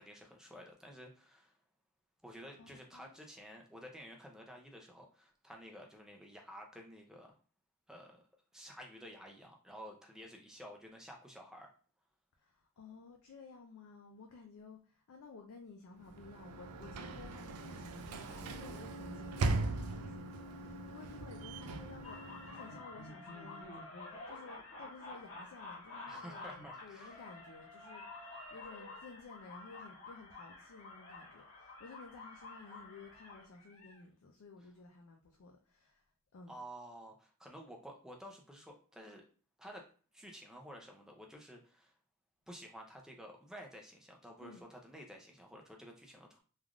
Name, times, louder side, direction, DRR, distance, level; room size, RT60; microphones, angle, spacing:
voice 1, 0.0-1.6 2.2-7.3 7.9-8.2 8.5-11.7 26.1-27.2 36.5-39.3 39.6-39.8 40.1-41.9 42.5-46.4, equal, 5° right, 0.4 m, -52 dB
voice 2, 2.6-3.1 12.4-36.0 36.3-36.5 44.4-44.6, left 4 dB, 65° left, 0.4 m, -54 dB
Sliding door / Slam, 16.0-23.0, right 3 dB, 85° right, 0.4 m, -40 dB
sound 1, 22.0-34.0, left 2 dB, 80° left, 0.9 m, -50 dB
3.3 x 2.4 x 2.4 m
head